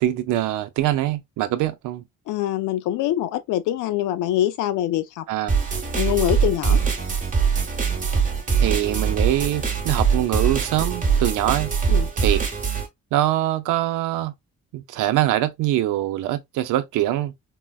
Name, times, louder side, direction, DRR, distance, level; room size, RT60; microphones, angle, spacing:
voice 1, 0.0-2.0 5.3-5.5 8.6-11.7 12.2-12.4 13.1-14.3 14.7-17.3, right 13 dB, 85° right, 0.5 m, -23 dB
voice 2, 2.3-5.2 6.0-6.8 11.9-12.1, left 13 dB, 85° left, 0.5 m, -24 dB
sound 1, 5.5-12.9, right 6 dB, 25° right, 0.9 m, -22 dB
3.8 x 2.0 x 2.2 m
cardioid pair, 90°, 30 cm